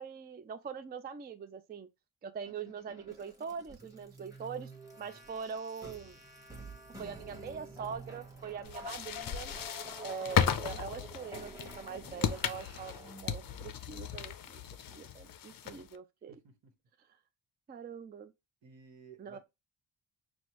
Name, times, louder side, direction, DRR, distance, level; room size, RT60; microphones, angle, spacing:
voice 1, 0.0-1.9 2.2-4.7 5.0-6.2 7.0-9.5 10.0-14.6 14.9-16.4 17.7-18.3 19.2-19.4, right 6 dB, 25° right, 0.4 m, -43 dB
sound 1, 2.5-13.7, right 1 dB, 5° right, 1.1 m, -49 dB
sound 2, 8.6-16.0, left 8 dB, 50° left, 0.5 m, -35 dB
voice 2, 16.3-16.7 18.6-19.4, right 6 dB, 70° right, 1.1 m, -56 dB
6.2 x 2.1 x 2.9 m
cardioid pair, 90°, 45 cm